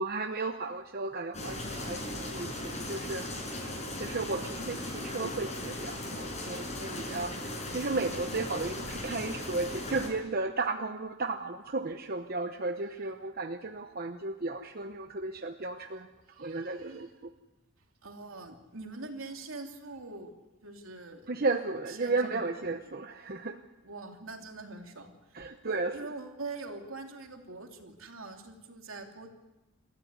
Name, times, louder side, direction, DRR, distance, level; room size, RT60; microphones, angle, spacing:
voice 1, 0.0-16.1 16.4-17.3 21.3-23.6 25.3-25.9, right 3 dB, 45° right, 6 dB, 0.9 m, -34 dB
sound 1, 1.3-10.1, left 1 dB, 35° left, 6.7 m, -38 dB
voice 2, 4.3-5.4 16.3-17.1 18.0-20.3 20.6-21.3 21.9-22.8 23.8-29.3, right 3 dB, 75° right, 3 dB, 3.1 m, -44 dB
27.5 x 14.5 x 9.6 m, 1.1 s
head